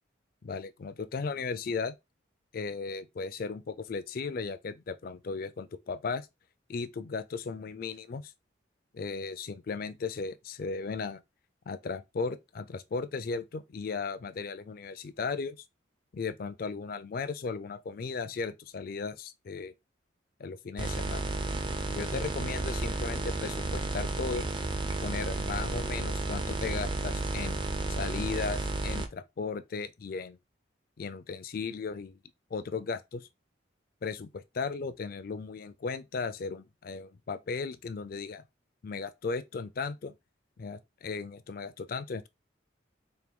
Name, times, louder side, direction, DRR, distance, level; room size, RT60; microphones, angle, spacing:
voice 1, 0.4-2.0 2.5-6.3 6.7-8.3 8.9-11.2 11.7-15.6 16.1-19.7 20.4-21.3 21.9-24.5 25.0-27.6 27.9-30.4 31.0-32.2 32.5-33.3 34.0-38.4 38.8-40.1 40.6-42.3, left 4 dB, 50° left, 0.4 m, -36 dB
sound 1, 20.8-29.1, right 2 dB, 25° right, 0.4 m, -32 dB
4.4 x 2.2 x 3.5 m
head